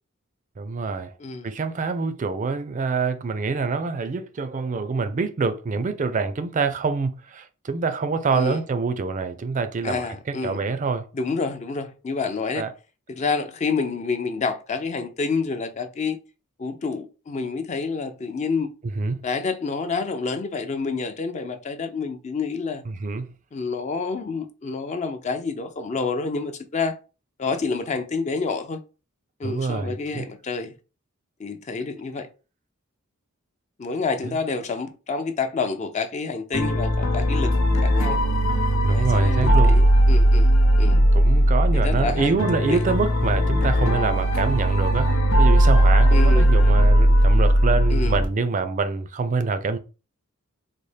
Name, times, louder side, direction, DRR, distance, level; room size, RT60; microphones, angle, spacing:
voice 1, 0.6-1.1 1.4-10.1 10.4-11.1 12.6-12.7 18.9-19.2 22.9-23.3 29.4-30.3 34.2-34.4 38.5-39.8 41.1-49.8, right 4 dB, 40° right, 0.4 m, -26 dB
voice 2, 9.8-10.6 11.1-12.7 13.1-16.2 16.6-18.7 19.2-22.8 23.5-27.0 27.4-28.8 29.4-30.7 31.4-32.3 33.8-37.5 37.8-38.2 38.9-41.0 41.7-42.8 46.1-46.5 47.9-48.1, left 4 dB, 35° left, 0.4 m, -28 dB
sound 1, 36.5-48.2, equal, 90° left, 0.7 m, -18 dB
4.0 x 2.1 x 3.2 m
head